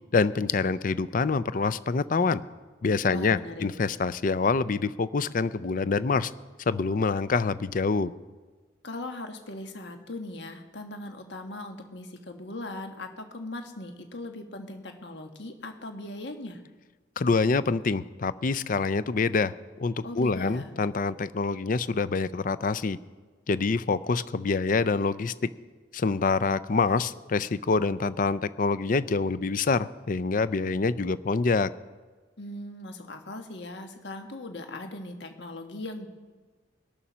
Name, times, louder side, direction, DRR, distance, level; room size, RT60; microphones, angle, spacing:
voice 1, 0.1-2.4 2.8-6.3 6.7-8.1 17.2-19.5 19.8-23.0 23.5-25.5 25.9-31.7, left 4 dB, 45° left, 16 dB, 0.5 m, -26 dB
voice 2, 3.1-3.6 8.8-16.6 20.0-20.7 32.4-36.1, left 2 dB, 60° left, 5 dB, 1.5 m, -39 dB
20.5 x 7.1 x 6.2 m, 1.4 s
head